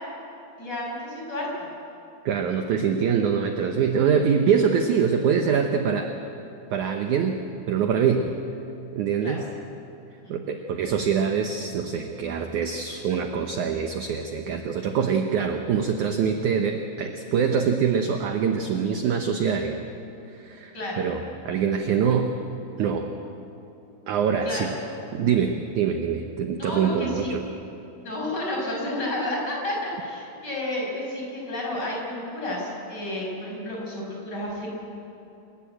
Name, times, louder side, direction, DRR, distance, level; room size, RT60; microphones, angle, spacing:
voice 1, 0.6-1.5 9.2-9.4 10.2-10.3 20.7-21.1 24.4-24.8 26.6-27.3 28.0-34.7, left 1 dB, 25° left, -3 dB, 6.4 m, -31 dB
voice 2, 2.3-6.1 6.7-7.4 7.7-8.3 8.9-9.5 10.3-19.8 20.3-22.3 22.8-23.1 24.1-24.7 25.1-27.4, right 7 dB, 70° right, 5 dB, 2.0 m, -24 dB
28.0 x 15.0 x 9.0 m, 3.0 s
omnidirectional pair, 4.5 m